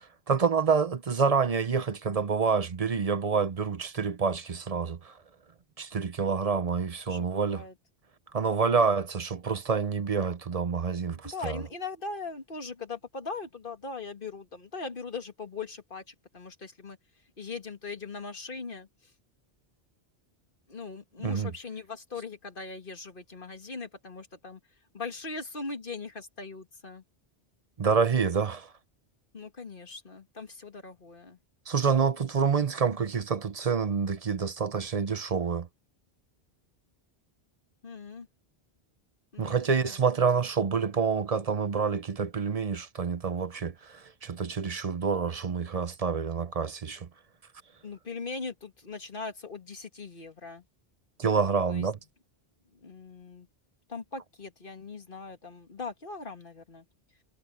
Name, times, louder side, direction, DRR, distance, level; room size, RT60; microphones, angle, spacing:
voice 1, 0.3-5.1 5.8-7.6 8.3-11.6 21.2-21.5 27.8-28.7 31.7-35.7 39.4-47.1 51.2-52.0, right 5 dB, 40° right, 0.8 m, -27 dB
voice 2, 7.1-7.7 11.2-17.0 17.4-18.9 20.7-24.6 24.9-27.0 29.3-31.4 37.8-38.3 39.3-40.0 47.8-50.6 51.7-51.9 52.8-53.5 53.9-56.8, left 4 dB, 55° left, 2.2 m, -40 dB
omnidirectional pair, 1.0 m